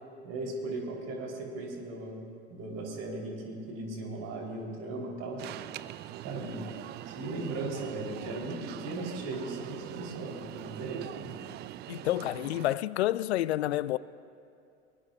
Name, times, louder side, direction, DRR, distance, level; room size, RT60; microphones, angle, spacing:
voice 1, 0.2-2.2 2.5-5.4 6.2-6.6 7.0-11.3, right 2 dB, 45° right, 4.6 m, -37 dB
Alarm, 5.4-12.7, right 14 dB, 30° right, 0.4 m, -43 dB
voice 2, 11.9-14.0, left 14 dB, 70° left, 0.5 m, -29 dB
23.5 x 21.5 x 2.7 m
figure-of-eight pair, 80°, 34 cm